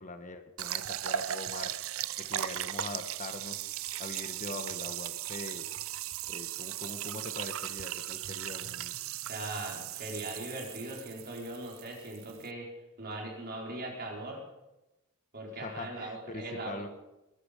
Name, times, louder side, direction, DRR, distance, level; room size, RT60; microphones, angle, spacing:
voice 1, 0.0-1.7 2.2-3.6 4.0-5.7 6.3-8.9 15.5-16.9, left 2 dB, 35° left, 8 dB, 1.2 m, -42 dB
sound 1, 0.6-12.5, right 12 dB, 65° right, 0.5 m, -37 dB
voice 2, 9.3-12.7 13.0-14.4 15.3-16.8, right 2 dB, 45° right, 0 dB, 4.1 m, -40 dB
21.5 x 12.0 x 5.1 m, 0.98 s
head